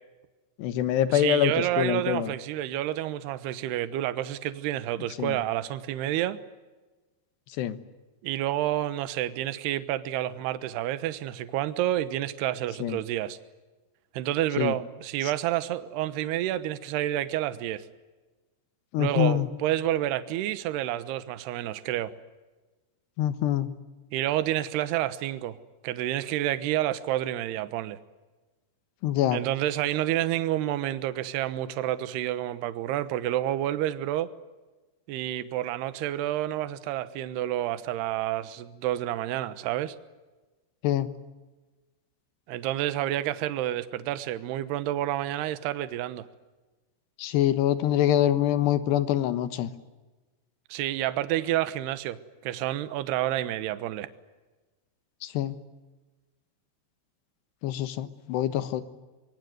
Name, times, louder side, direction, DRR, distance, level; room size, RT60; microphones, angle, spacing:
voice 1, 0.6-2.3 5.2-5.4 7.6-7.8 12.8-13.0 14.6-14.7 18.9-19.5 23.2-23.7 29.0-29.4 40.8-41.1 47.2-49.7 55.2-55.6 57.6-58.8, left 11 dB, 70° left, 12 dB, 3.2 m, -25 dB
voice 2, 1.1-6.4 8.2-13.4 14.1-17.8 19.0-22.1 24.1-25.6 25.8-28.0 29.3-34.3 35.1-40.0 42.5-46.3 50.7-52.2 52.4-54.1, right 13 dB, 70° right, 13 dB, 3.0 m, -29 dB
25.0 x 24.0 x 9.3 m, 1.2 s
omnidirectional pair, 5.3 m